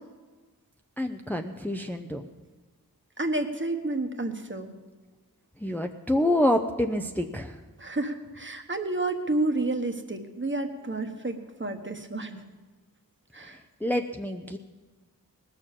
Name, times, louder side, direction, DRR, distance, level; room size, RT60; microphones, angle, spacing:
voice 1, 1.0-2.3 5.6-7.6 13.8-14.6, left 1 dB, 5° left, 4 dB, 0.6 m, -27 dB
voice 2, 3.2-4.7 7.8-12.4 13.3-13.6, right 2 dB, 30° right, 6 dB, 1.2 m, -30 dB
19.0 x 6.8 x 7.4 m, 1.3 s
wide cardioid pair, 65°, 36 cm